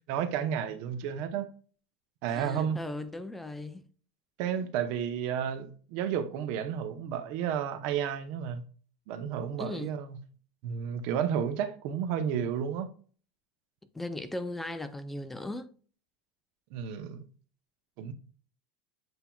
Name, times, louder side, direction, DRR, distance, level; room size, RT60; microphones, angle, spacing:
voice 1, 0.0-1.5 2.2-2.8 4.4-8.6 9.1-10.2 10.6-12.9 16.7-17.2 18.0-18.1, right 8 dB, 60° right, 0.8 m, -32 dB
voice 2, 2.3-3.8 9.6-10.0 13.9-15.7, left 2 dB, 10° left, 0.4 m, -37 dB
7.8 x 2.8 x 2.3 m
supercardioid pair, 130°, 3 cm